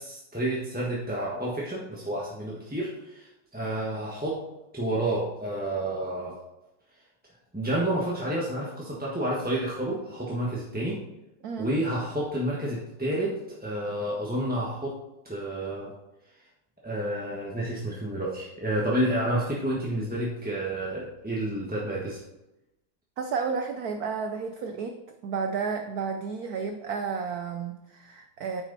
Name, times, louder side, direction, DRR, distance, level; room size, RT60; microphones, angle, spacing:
voice 1, 0.0-3.3 3.5-4.4 4.7-6.3 7.5-11.0 11.6-15.0 15.2-15.9 16.8-22.2, right 1 dB, 5° right, -5 dB, 1.0 m, -30 dB
voice 2, 23.2-28.6, right 5 dB, 80° right, 5 dB, 0.8 m, -32 dB
9.6 x 6.2 x 4.1 m, 0.92 s
omnidirectional pair, 2.3 m